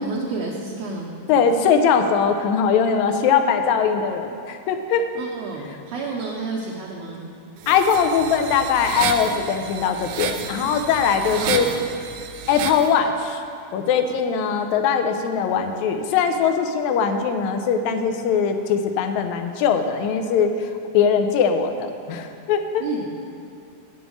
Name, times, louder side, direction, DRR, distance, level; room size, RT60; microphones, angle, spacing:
voice 1, 0.0-1.2 5.1-7.3 11.3-11.8 22.8-23.1, right 3 dB, 70° right, -2 dB, 1.7 m, -30 dB
voice 2, 1.3-5.0 7.7-11.7 12.5-13.4 13.7-20.5 20.9-22.8, left 6 dB, 80° left, 7 dB, 1.9 m, -21 dB
sound 1, 7.6-12.9, right 7 dB, 90° right, 1.4 m, -31 dB
8.8 x 7.1 x 6.2 m, 2.5 s
omnidirectional pair, 3.5 m